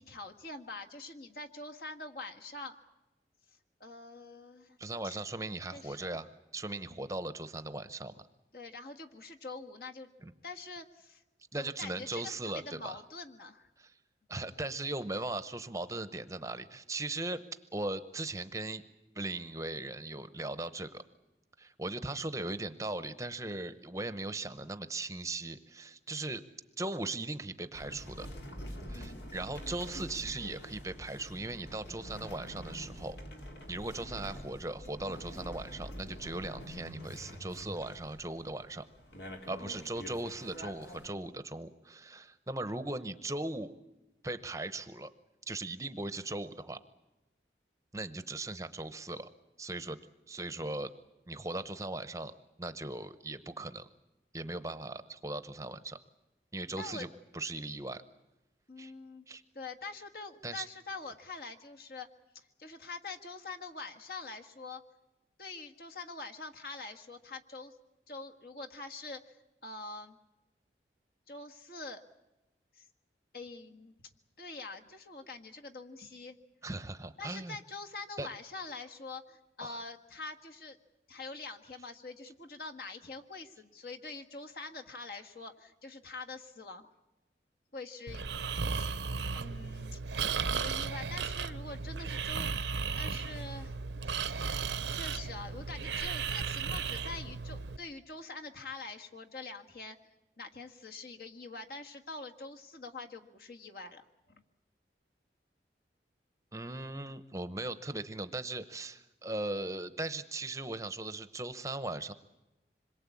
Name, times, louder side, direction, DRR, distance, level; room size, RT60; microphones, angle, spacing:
voice 1, 0.0-2.7 3.8-4.8 5.0-5.2 5.7-6.2 7.0-7.1 8.5-10.1 10.4-11.2 11.6-13.7 28.9-29.3 39.6-39.9 56.8-57.1 58.7-59.3 59.5-62.1 62.6-64.8 65.4-67.8 68.1-69.4 69.6-70.2 71.3-72.0 72.7-72.8 73.3-73.9 74.4-76.4 77.2-80.8 81.1-86.9 87.7-88.2 88.6-88.9 89.3-92.5 93.0-93.8 94.0-94.6 94.9-100.0 100.4-104.0 104.3-104.4, left 3 dB, 55° left, 4 dB, 1.7 m, -45 dB
voice 2, 4.8-8.2 10.2-10.3 11.5-13.0 13.8-13.9 14.3-17.4 17.7-18.8 19.2-21.0 21.6-26.4 26.8-28.3 28.9-33.2 33.7-38.8 39.5-43.7 44.2-45.1 45.5-46.8 47.9-49.3 49.6-50.0 50.3-50.9 51.3-52.3 52.6-53.9 54.3-56.0 56.5-57.1 57.3-58.0 58.8-58.9 59.3-59.4 60.4-60.7 76.6-77.6 78.2-78.3 79.6-79.8 106.5-112.1, right 2 dB, 20° right, 12 dB, 0.8 m, -38 dB
sound 1, 27.7-41.1, equal, 80° left, 3.3 m, -46 dB
Breathing, 88.1-97.8, right 5 dB, 90° right, 0.9 m, -35 dB
26.0 x 22.0 x 8.5 m, 1.0 s
head